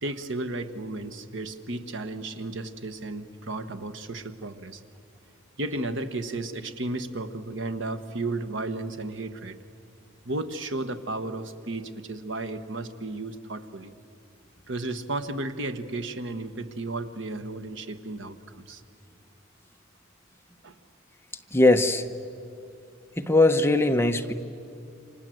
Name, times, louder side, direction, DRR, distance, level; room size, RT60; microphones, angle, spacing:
voice 1, 0.0-4.8 5.6-9.6 10.2-13.9 14.7-18.8 20.6-20.8, right 2 dB, 65° right, 9 dB, 1.4 m, -33 dB
voice 2, 21.5-22.0 23.2-24.3, left 2 dB, 10° left, 6 dB, 0.9 m, -20 dB
29.0 x 26.0 x 7.8 m, 2.6 s
head